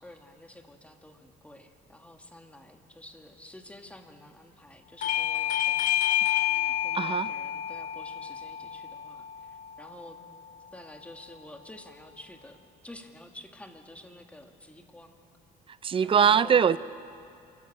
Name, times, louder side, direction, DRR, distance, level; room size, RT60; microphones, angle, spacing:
voice 1, 0.0-5.9 6.2-9.3 9.8-10.2 10.7-12.6 12.8-15.2 16.0-16.7, left 1 dB, 10° left, 4 dB, 2.0 m, -50 dB
Bell / Doorbell, 5.0-10.2, left 11 dB, 50° left, 0.6 m, -29 dB
voice 2, 6.9-7.3 15.8-16.8, right 7 dB, 30° right, 16 dB, 0.6 m, -22 dB
27.5 x 14.5 x 8.6 m, 2.5 s
cardioid pair, 110°, 17 cm